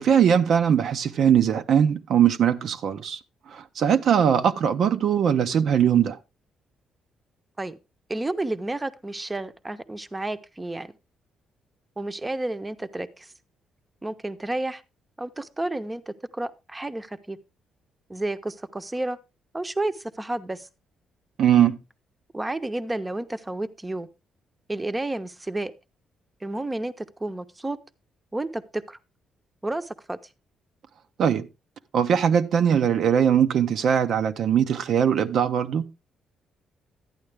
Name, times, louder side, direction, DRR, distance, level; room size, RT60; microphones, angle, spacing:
voice 1, 0.0-3.2 3.5-6.2 21.4-21.8 31.2-31.5 31.9-35.9, right 8 dB, 65° right, 0.6 m, -21 dB
voice 2, 8.1-10.9 12.0-13.3 14.0-14.8 15.2-17.4 18.1-19.2 19.5-20.7 22.3-24.1 24.7-25.7 26.4-27.8 28.3-29.0 29.6-30.2, right 2 dB, 15° right, 0.7 m, -31 dB
12.0 x 8.8 x 3.4 m
cardioid pair, 90°, 0 cm